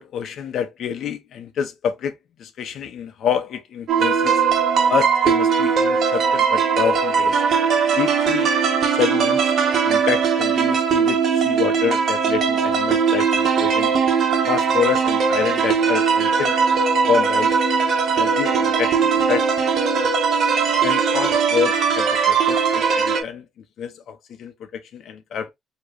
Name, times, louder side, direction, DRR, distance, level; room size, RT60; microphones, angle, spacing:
voice 1, 0.0-2.1 2.4-4.4 4.9-7.4 8.0-8.5 8.9-9.6 9.8-13.9 14.5-16.6 17.1-17.5 18.1-19.5 20.8-23.4 23.8-25.5, left 8 dB, 70° left, 0.8 m, -27 dB
sound 1, 3.9-23.2, right 6 dB, 60° right, 1.2 m, -19 dB
4.7 x 3.0 x 2.5 m
cardioid pair, 90°, 0 cm